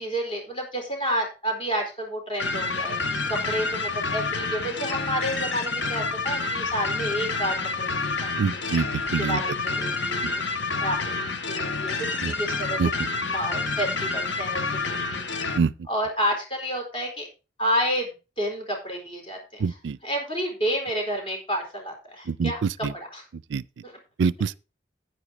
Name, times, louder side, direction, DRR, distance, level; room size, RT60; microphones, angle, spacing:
voice 1, 0.0-8.3 9.2-10.4 10.8-12.8 13.3-15.5 15.9-17.3 17.6-19.8 20.0-23.3 23.8-24.0, equal, 30° left, 4.3 m, -30 dB
sound 1, 2.4-15.6, left 3 dB, 90° left, 1.1 m, -28 dB
voice 2, 8.4-9.4 12.2-12.3 12.8-12.9 15.6-15.7 19.6-20.0 22.3-22.5 22.8-22.9 23.5-23.6 24.2-24.6, right 5 dB, 80° right, 0.4 m, -25 dB
10.0 x 9.0 x 4.1 m
head